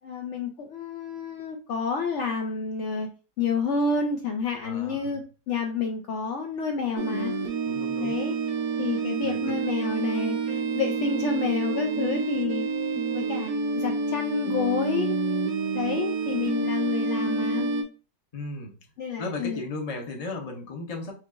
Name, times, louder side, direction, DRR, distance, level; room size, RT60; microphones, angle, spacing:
voice 1, 0.0-3.1 3.4-7.3 8.0-8.3 8.8-12.7 13.1-15.2 15.7-17.7 19.0-19.6, left 5 dB, 85° left, 2 dB, 0.6 m, -29 dB
voice 2, 4.6-5.2 7.6-8.2 9.2-9.5 18.3-18.8 19.2-21.1, left 2 dB, 40° left, 2 dB, 0.5 m, -35 dB
sound 1, 7.0-17.8, right 4 dB, 65° right, 1.0 m, -28 dB
4.6 x 2.8 x 2.4 m, 0.35 s
omnidirectional pair, 1.8 m